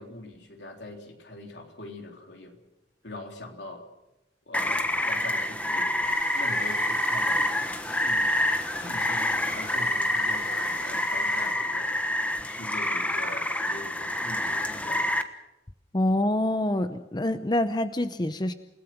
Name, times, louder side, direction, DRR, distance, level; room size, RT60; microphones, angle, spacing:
voice 1, 0.0-2.6 3.0-3.8 4.5-6.0 6.3-7.5 8.0-8.3 8.8-12.0 12.4-15.1, left 2 dB, 80° left, 3 dB, 3.6 m, -42 dB
Rain, 4.5-15.2, left 1 dB, 10° left, 1.2 m, -27 dB
sound 1, 6.0-11.6, left 3 dB, 55° left, 3.6 m, -45 dB
voice 2, 15.9-18.5, left 1 dB, 25° left, 10 dB, 0.7 m, -26 dB
29.0 x 17.5 x 6.1 m, 0.95 s
head